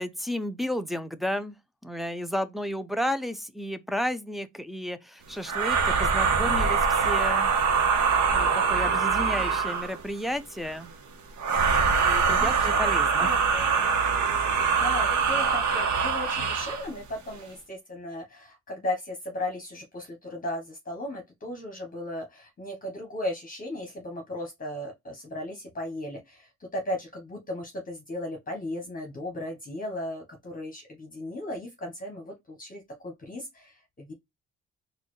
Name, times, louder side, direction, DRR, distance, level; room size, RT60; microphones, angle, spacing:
voice 1, 0.0-1.6 1.8-6.8 7.0-7.5 8.3-10.9 11.5-13.3, equal, ahead, 0.4 m, -32 dB
sound 1, 5.5-10.0 11.4-16.9, right 5 dB, 70° right, 0.9 m, -24 dB
voice 2, 12.3-12.7 13.2-13.9 14.6-34.1, left 1 dB, 30° left, 1.0 m, -36 dB
4.0 x 2.3 x 3.1 m
cardioid pair, 90°, 30 cm